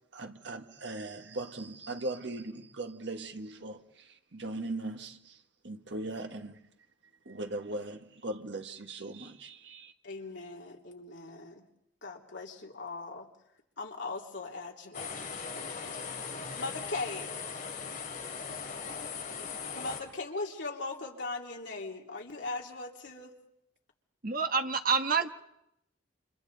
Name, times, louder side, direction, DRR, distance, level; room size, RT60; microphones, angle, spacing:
voice 1, 0.1-5.4 5.6-6.6 7.2-9.9, right 2 dB, 65° right, 1.6 m, -39 dB
voice 2, 10.0-11.6 12.0-13.3 13.8-15.2 15.5-16.2 16.5-17.3 19.7-23.3, left 3 dB, 70° left, 3.0 m, -39 dB
sound 1, 14.9-20.0, left 5 dB, 45° left, 3.6 m, -39 dB
voice 3, 24.2-25.3, right 5 dB, 50° right, 1.3 m, -27 dB
30.0 x 27.5 x 4.0 m
head